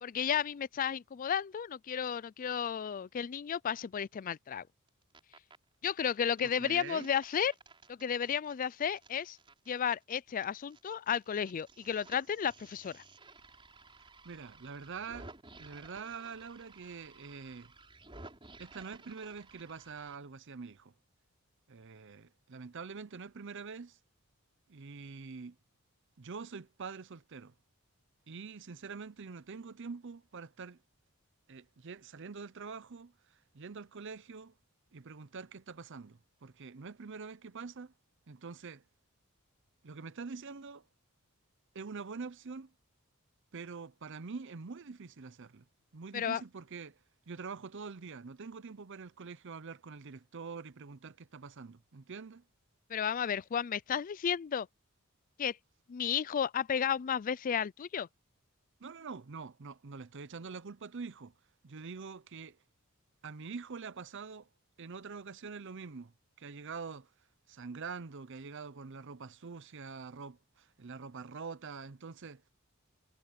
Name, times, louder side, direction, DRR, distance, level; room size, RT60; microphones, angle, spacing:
voice 1, 0.0-4.6 5.8-7.5 7.9-9.4 9.7-13.0 46.1-46.4 52.9-54.7 55.4-55.6 55.9-58.1, left 8 dB, 40° left, 0.3 m, -33 dB
sound 1, 4.9-5.6 5.9-10.9 11.2-20.2, right 3 dB, 25° right, 4.3 m, -55 dB
voice 2, 6.4-7.1 14.2-15.3 15.6-17.7 18.6-20.9 21.7-24.0 24.7-25.6 26.2-27.5 28.3-30.8 31.5-33.1 33.5-34.5 34.9-37.9 38.3-38.8 39.8-40.8 41.7-42.7 43.5-45.6 45.9-47.0 47.3-52.4 58.8-61.3 61.6-62.6 63.2-64.5 64.8-66.1 66.4-67.1 67.5-72.4, right 5 dB, 55° right, 0.7 m, -45 dB
head